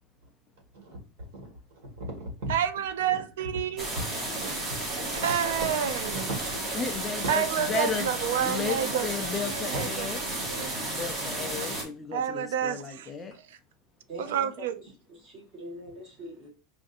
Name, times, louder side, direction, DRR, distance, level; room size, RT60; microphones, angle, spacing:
voice 1, 1.3-2.5 3.7-3.8 4.4-4.5 5.3-5.7 6.1-6.5 7.1-7.4 9.5-9.8, right 2 dB, 65° right, 1.9 m, -38 dB
voice 2, 2.5-3.9 5.1-6.3 7.3-10.7 12.1-13.1 14.2-14.8, right 9 dB, 85° right, 0.5 m, -29 dB
sound 1, 3.8-11.8, right 2 dB, 15° right, 0.9 m, -33 dB
voice 3, 6.8-7.4 7.7-8.1 8.4-8.8 9.0-10.2 10.8-13.3, left 5 dB, 10° left, 0.4 m, -33 dB
voice 4, 14.1-14.8 15.1-16.5, equal, 30° right, 1.2 m, -43 dB
5.0 x 2.5 x 2.6 m
supercardioid pair, 175°, 0 cm